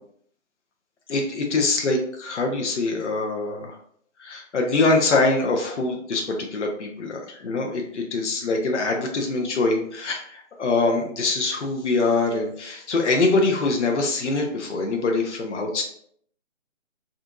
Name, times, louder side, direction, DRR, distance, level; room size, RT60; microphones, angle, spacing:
voice 1, 1.1-3.8 4.2-15.8, left 3 dB, 65° left, 2 dB, 0.6 m, -24 dB
2.7 x 2.5 x 2.4 m, 0.65 s
hypercardioid pair, 175°, 38 cm